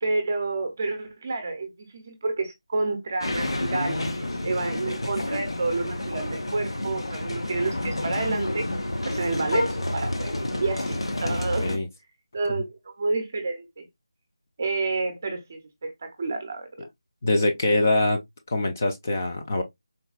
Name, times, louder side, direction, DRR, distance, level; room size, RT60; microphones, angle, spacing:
voice 1, 0.0-8.7 9.0-11.7 12.3-13.9 14.6-16.9, right 3 dB, 25° right, 0.6 m, -29 dB
sound 1, 3.2-11.8, left 1 dB, 90° left, 0.8 m, -29 dB
voice 2, 11.2-11.9 12.5-12.6 17.2-18.2 18.5-19.6, left 2 dB, 30° left, 0.4 m, -24 dB
4.0 x 2.2 x 2.2 m
figure-of-eight pair, 175°, 3 cm